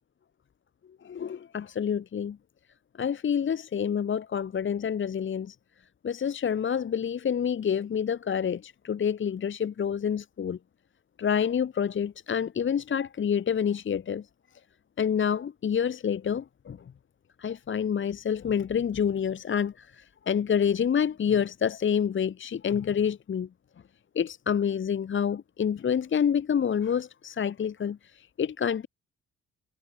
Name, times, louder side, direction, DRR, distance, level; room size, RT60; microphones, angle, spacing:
voice 1, 1.0-2.4 3.0-5.6 6.0-10.6 11.2-14.3 15.0-16.8 17.4-23.5 24.1-28.9, left 7 dB, 40° left, 1.0 m, -28 dB
cardioid pair, 90°, 30 cm